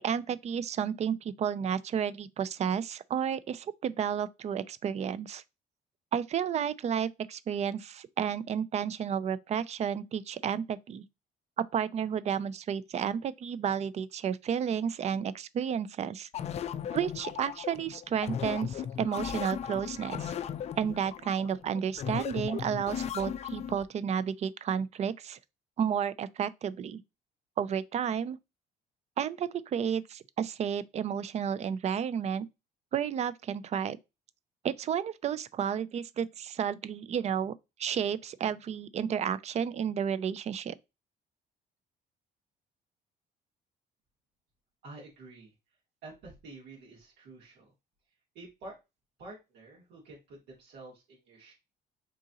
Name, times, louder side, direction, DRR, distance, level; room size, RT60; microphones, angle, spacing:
voice 1, 0.0-5.4 6.1-11.0 11.7-16.3 16.9-20.3 20.8-25.4 25.8-27.0 27.6-28.4 29.2-32.5 32.9-34.0 34.6-37.5 37.8-40.7, right 8 dB, 40° right, 0.4 m, -32 dB
sound 1, 16.3-23.8, left 9 dB, 40° left, 0.3 m, -37 dB
voice 2, 44.8-45.5 46.0-47.7 48.3-48.8 49.2-51.5, right 2 dB, 85° right, 2.0 m, -49 dB
3.7 x 2.8 x 3.7 m
cardioid pair, 110°, 17 cm